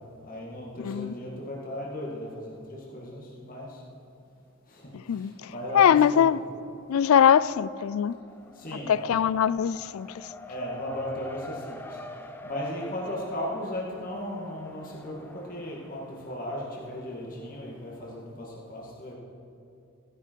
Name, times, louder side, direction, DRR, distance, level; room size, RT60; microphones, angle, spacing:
voice 1, 0.2-3.7 5.5-6.3 8.6-9.2 10.5-11.8 12.4-19.1, equal, 40° left, 2.1 m, -36 dB
voice 2, 0.8-1.1 4.9-6.4 6.9-8.1 8.7-10.3, left 8 dB, 85° left, 0.4 m, -22 dB
Race car auto racing, 6.1-6.4 6.7-18.1, left 1 dB, 10° left, 0.5 m, -47 dB
16.0 x 11.0 x 4.6 m
head